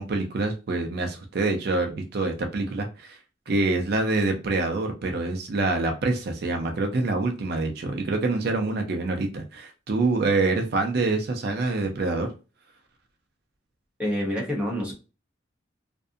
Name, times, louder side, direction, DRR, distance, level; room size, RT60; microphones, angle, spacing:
voice 1, 0.0-3.2 3.5-12.3, right 3 dB, 55° right, 4 dB, 0.4 m, -26 dB
voice 2, 14.0-14.9, equal, 5° right, -3 dB, 0.8 m, -27 dB
2.6 x 2.4 x 2.4 m, 0.32 s
head